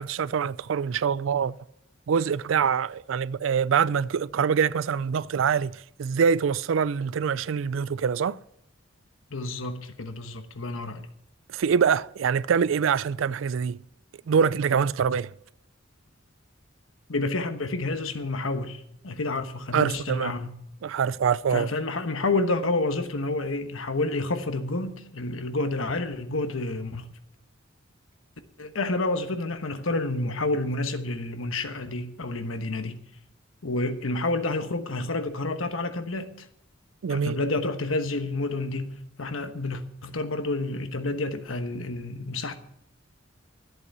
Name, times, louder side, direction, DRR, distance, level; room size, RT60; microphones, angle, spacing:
voice 1, 0.0-1.6 2.1-8.4 11.5-13.8 14.3-15.3 19.7-20.3 20.8-21.7 37.0-37.4, right 6 dB, 70° right, 0.4 m, -24 dB
voice 2, 9.3-11.1 17.1-20.5 21.5-27.1 28.6-33.0 33.6-36.3 37.1-42.6, left 2 dB, 80° left, 1.2 m, -29 dB
13.5 x 8.2 x 6.8 m
head